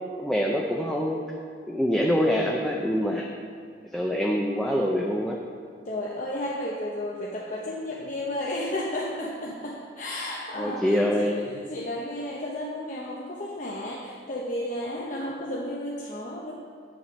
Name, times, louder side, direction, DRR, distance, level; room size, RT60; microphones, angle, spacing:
voice 1, 0.2-1.2 1.7-3.3 3.9-5.4 10.6-11.3, equal, ahead, -1 dB, 0.6 m, -25 dB
voice 2, 5.9-16.5, left 1 dB, 45° left, -4 dB, 0.9 m, -33 dB
9.0 x 7.1 x 5.3 m, 2.1 s
head